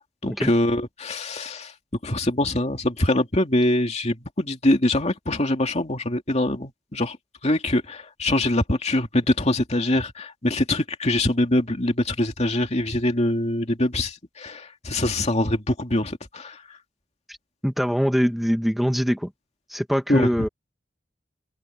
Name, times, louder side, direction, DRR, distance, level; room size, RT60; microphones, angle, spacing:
voice 1, 0.2-1.7 2.0-7.2 7.4-16.6 20.1-20.5, left 1 dB, 35° left, 2.5 m, -23 dB
voice 2, 17.6-19.3 19.7-20.5, equal, ahead, 1.6 m, -23 dB
open air
head